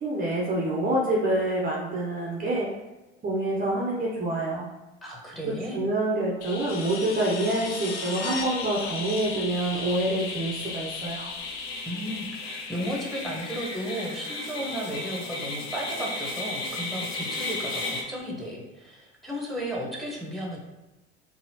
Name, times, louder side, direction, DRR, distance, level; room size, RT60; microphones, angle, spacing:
voice 1, 0.0-2.7 3.2-4.6 5.7-11.3, right 1 dB, 25° right, -4 dB, 0.7 m, -27 dB
voice 2, 5.0-5.8 11.8-20.6, equal, ahead, -3 dB, 1.0 m, -34 dB
sound 1, 6.4-15.1 17.4-17.5, left 5 dB, 85° left, 0.5 m, -36 dB
sound 2, 7.8-18.0, left 2 dB, 50° left, 0.8 m, -36 dB
4.1 x 2.0 x 2.8 m, 1.0 s
hypercardioid pair, 70°, 35 cm